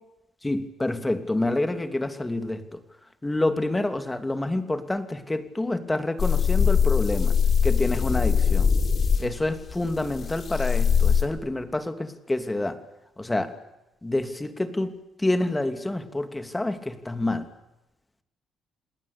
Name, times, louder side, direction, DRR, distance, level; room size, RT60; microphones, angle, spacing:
voice 1, 0.4-2.8 3.2-7.4 7.6-8.7 9.2-12.8 13.2-13.5 14.0-17.5, left 2 dB, 15° left, 9 dB, 2.8 m, -28 dB
sound 1, 6.2-11.2, left 6 dB, 45° left, 4.3 m, -22 dB
28.5 x 19.5 x 8.4 m, 0.94 s
cardioid pair, 90°, 0 cm